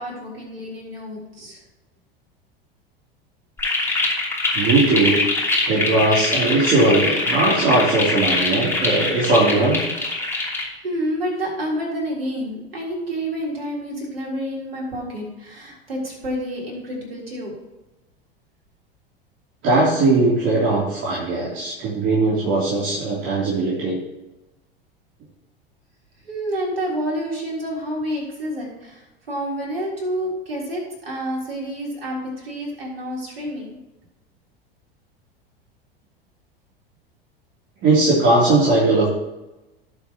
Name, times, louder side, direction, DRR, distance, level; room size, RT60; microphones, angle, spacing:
voice 1, 0.0-1.6 10.8-17.5 26.2-33.8, equal, 75° right, -3 dB, 3.7 m, -29 dB
sound 1, 3.6-10.7, left 2 dB, 10° left, 3.1 m, -23 dB
voice 2, 4.5-5.2 5.7-9.8 19.6-24.0 37.8-39.1, right 2 dB, 40° right, -6 dB, 3.1 m, -19 dB
18.0 x 6.8 x 3.0 m, 1.0 s
figure-of-eight pair, 80°, 29 cm